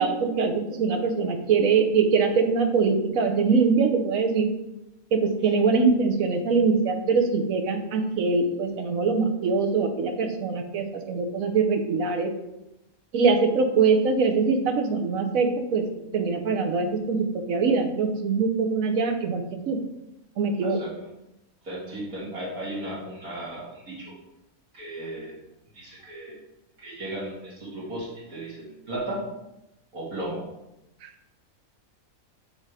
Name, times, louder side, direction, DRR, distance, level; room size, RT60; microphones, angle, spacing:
voice 1, 0.0-4.5 5.1-12.3 13.1-15.9 16.1-19.8 20.4-20.8 31.0-31.1, right 4 dB, 70° right, 6 dB, 1.2 m, -23 dB
voice 2, 20.6-20.9 21.6-24.1 24.7-25.4 25.7-26.4 26.8-29.3 29.9-30.5, right 1 dB, 85° right, -7 dB, 2.5 m, -35 dB
6.6 x 3.8 x 4.8 m, 0.91 s
omnidirectional pair, 1.5 m